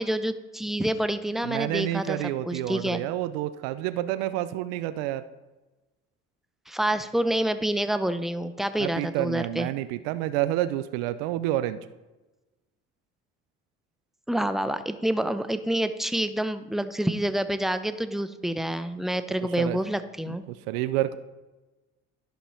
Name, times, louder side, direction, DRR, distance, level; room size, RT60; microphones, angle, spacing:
voice 1, 0.0-2.2 2.5-3.0 6.7-9.7 14.3-20.4, right 1 dB, ahead, 11 dB, 0.6 m, -27 dB
voice 2, 1.4-5.2 8.8-11.8 19.6-19.8 20.3-21.2, right 14 dB, 85° right, 13 dB, 0.5 m, -29 dB
11.5 x 5.4 x 4.4 m, 1.1 s
supercardioid pair, 70°, 30 cm